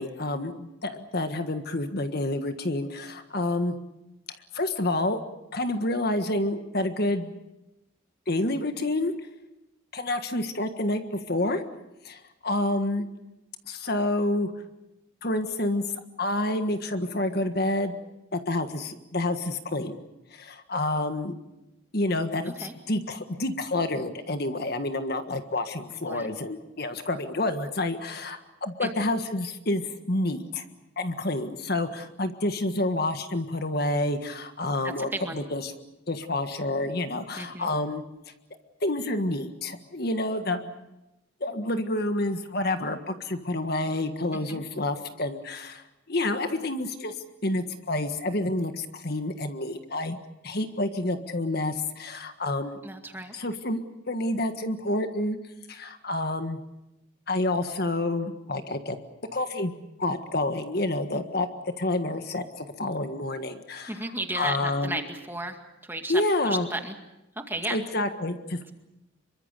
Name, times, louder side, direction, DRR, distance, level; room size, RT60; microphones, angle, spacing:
voice 1, 0.0-3.7 4.5-5.2 5.5-7.3 8.3-9.1 9.9-11.0 11.3-11.6 12.0-13.1 13.7-14.5 15.2-15.8 16.2-18.0 18.3-20.0 20.3-21.4 21.9-30.6 31.0-35.7 36.1-38.0 38.8-40.9 41.4-47.1 47.4-50.2 50.4-52.8 53.3-53.8 54.1-55.4 55.7-56.6 57.3-59.0 59.3-59.7 60.0-61.5 61.8-63.9 64.3-65.0 66.1-66.7 67.7-68.7, left 2 dB, 50° left, 8 dB, 1.6 m, -28 dB
voice 2, 25.9-26.3 28.8-28.9 34.8-35.4 37.4-37.7 44.3-44.6 52.8-53.3 63.9-67.0 67.3-67.8, right 2 dB, 10° right, 5 dB, 2.1 m, -34 dB
26.5 x 23.5 x 6.8 m, 0.93 s
head